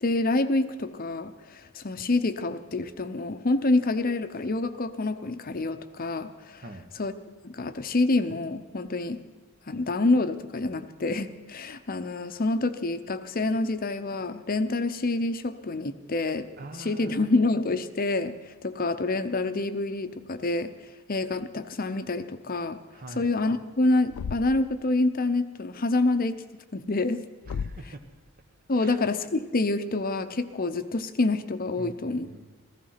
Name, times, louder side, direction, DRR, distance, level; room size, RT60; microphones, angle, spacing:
voice 1, 0.0-6.6 6.9-7.1 7.4-9.2 9.7-16.5 16.7-20.7 21.1-22.8 23.2-26.4 26.7-27.2 28.7-32.3, left 2 dB, 40° left, 10 dB, 0.7 m, -27 dB
voice 2, 6.6-6.9 16.6-17.3 22.9-23.3 27.4-28.0 28.7-29.0 31.8-32.5, right 2 dB, 40° right, 7 dB, 1.1 m, -43 dB
Thump thud, 24.1-24.7 27.4-28.0, left 6 dB, 85° left, 0.4 m, -34 dB
15.5 x 14.5 x 5.7 m, 1.4 s
head